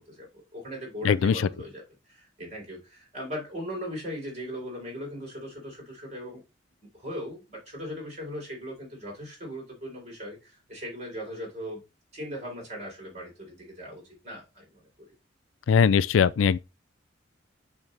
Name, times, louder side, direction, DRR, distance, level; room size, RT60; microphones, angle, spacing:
voice 1, 0.0-6.4 6.9-11.8 12.1-14.8, equal, 35° right, 3.9 m, -39 dB
voice 2, 1.0-1.5 15.7-16.6, left 6 dB, 85° left, 0.3 m, -21 dB
8.7 x 3.6 x 3.2 m
head